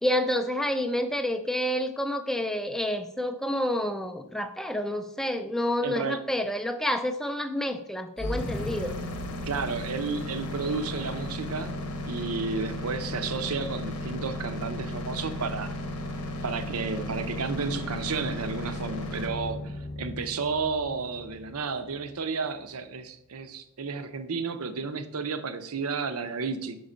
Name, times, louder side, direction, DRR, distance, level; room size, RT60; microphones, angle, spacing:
voice 1, 0.0-9.0, left 1 dB, ahead, 7 dB, 0.3 m, -29 dB
voice 2, 5.8-6.2 9.4-15.7 16.4-26.8, right 4 dB, 80° right, 9 dB, 0.7 m, -32 dB
sound 1, 8.2-22.1, left 1 dB, 90° left, 0.9 m, -35 dB
5.5 x 5.1 x 5.0 m, 0.78 s
head